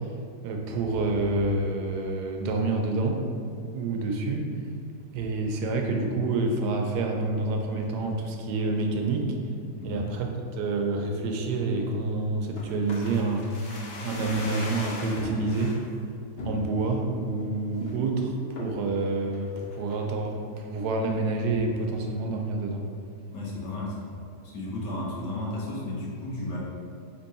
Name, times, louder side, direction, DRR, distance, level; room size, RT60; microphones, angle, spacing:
voice 1, 0.4-3.2 3.7-4.5 5.1-9.3 9.8-10.3 10.6-15.8 16.4-22.9, right 3 dB, 75° right, 2 dB, 1.1 m, -28 dB
sound 1, 12.6-15.8 16.4-17.0 17.4-17.5 17.7-18.1 18.6-18.9 19.3-20.0 20.3-20.4, left 2 dB, 55° left, 0.7 m, -38 dB
voice 2, 23.3-24.1 24.5-26.6, left 1 dB, 85° left, -4 dB, 1.6 m, -33 dB
4.4 x 2.9 x 4.1 m, 2.3 s
omnidirectional pair, 1.8 m